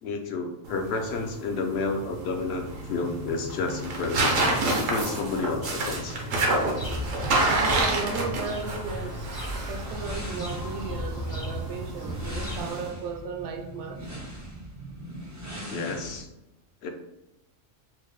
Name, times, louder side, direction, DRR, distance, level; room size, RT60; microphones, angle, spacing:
voice 1, 0.0-4.4 4.7-6.2 15.7-16.3 16.8-16.9, left 3 dB, 65° left, 0.7 m, -30 dB
sound 1, 0.7-12.9, right 2 dB, 85° right, 1.2 m, -29 dB
sound 2, 0.9-16.2, right 1 dB, 20° right, 0.5 m, -42 dB
sound 3, 6.8-12.6, left 1 dB, 40° left, 0.3 m, -36 dB
voice 2, 7.4-14.1, right 5 dB, 70° right, 0.8 m, -35 dB
4.5 x 2.1 x 3.1 m
omnidirectional pair, 1.3 m